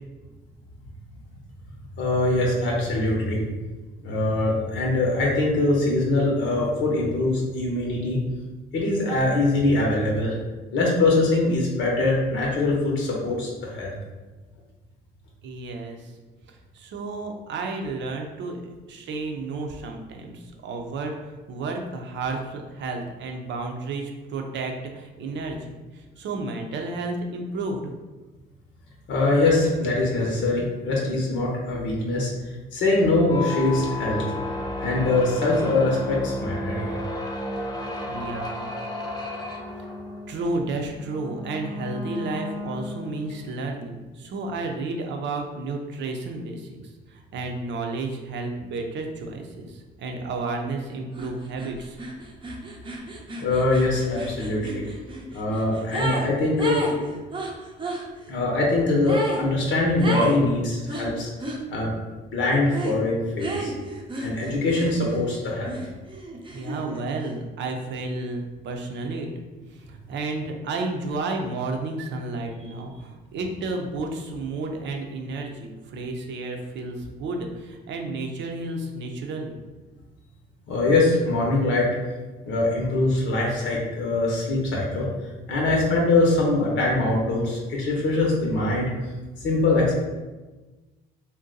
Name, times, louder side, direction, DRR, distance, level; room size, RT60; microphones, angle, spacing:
voice 1, 2.0-3.4 4.0-8.2 8.7-10.3 10.7-13.9 29.1-32.3 32.7-34.2 34.8-37.0 53.4-54.8 55.3-56.8 58.3-61.3 61.7-61.9 62.3-63.7 64.2-65.8 80.7-81.9 82.4-85.1 85.5-88.9 89.4-89.9, left 2 dB, 65° left, -2 dB, 0.8 m, -23 dB
voice 2, 15.4-16.1 16.5-18.6 18.9-27.9 38.1-38.7 39.8-39.9 40.3-46.8 47.1-52.0 66.5-69.3 69.7-79.6, right 3 dB, 60° right, 2 dB, 0.6 m, -32 dB
sound 1, 33.2-43.5, left 1 dB, 20° left, 0.6 m, -33 dB
sound 2, 51.1-51.3 51.6-56.3 56.6-58.0 59.0-59.4 60.0-60.4 60.9-61.6 62.7-63.0 63.4-65.3 65.6-67.0, right 2 dB, 25° right, 0.6 m, -32 dB
2.6 x 2.2 x 3.9 m, 1.2 s
supercardioid pair, 70°, 21 cm